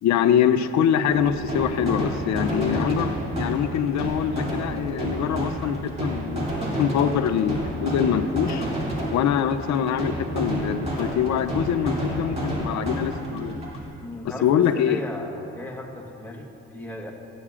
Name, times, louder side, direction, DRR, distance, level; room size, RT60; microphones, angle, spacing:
voice 1, 0.0-6.5 6.8-8.7 9.1-13.6 14.4-15.0, left 9 dB, 65° left, 10 dB, 0.6 m, -24 dB
sound 1, 1.0-13.8, right 1 dB, 20° right, 2.7 m, -29 dB
voice 2, 14.0-17.1, left 1 dB, 5° left, -1 dB, 1.3 m, -36 dB
15.5 x 9.9 x 2.5 m, 2.6 s
cardioid pair, 90°, 30 cm